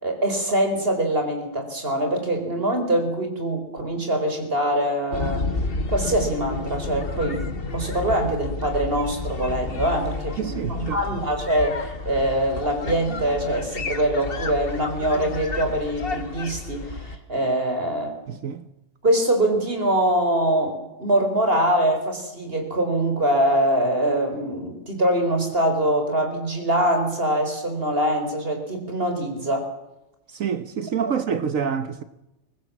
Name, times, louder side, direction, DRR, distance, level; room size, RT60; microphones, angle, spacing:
voice 1, 0.0-5.4 5.9-7.4 7.7-18.1 19.0-29.7, right 1 dB, 40° right, 4.7 m, -23 dB
sound 1, 5.1-17.2, left 3 dB, 40° left, 1.6 m, -31 dB
voice 2, 10.4-11.0 18.3-18.6 30.3-32.0, right 7 dB, 65° right, 1.3 m, -27 dB
24.0 x 20.0 x 7.3 m
omnidirectional pair, 1.5 m